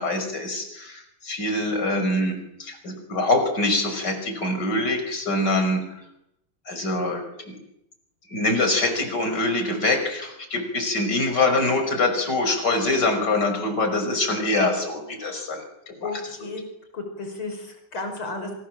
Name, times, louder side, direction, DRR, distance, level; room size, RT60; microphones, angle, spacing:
voice 1, 0.0-6.0 6.7-7.6 8.3-16.1, left 2 dB, 55° left, 6 dB, 6.3 m, -24 dB
voice 2, 16.0-16.6 16.9-18.5, left 3 dB, 90° left, 5 dB, 6.4 m, -33 dB
29.0 x 26.0 x 7.7 m, 0.80 s
omnidirectional pair, 2.2 m